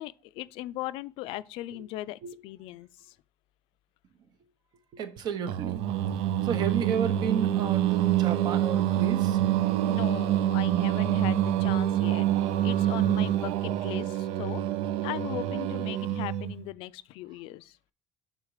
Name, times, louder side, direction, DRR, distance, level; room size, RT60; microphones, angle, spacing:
voice 1, 0.0-3.1 9.6-14.6 15.0-17.8, left 16 dB, 70° left, 0.4 m, -38 dB
voice 2, 4.9-5.8 6.4-9.7, right 7 dB, 45° right, 0.8 m, -32 dB
Singing, 5.5-16.6, right 12 dB, 75° right, 0.4 m, -26 dB
6.5 x 3.8 x 4.8 m
cardioid pair, 165°, 10 cm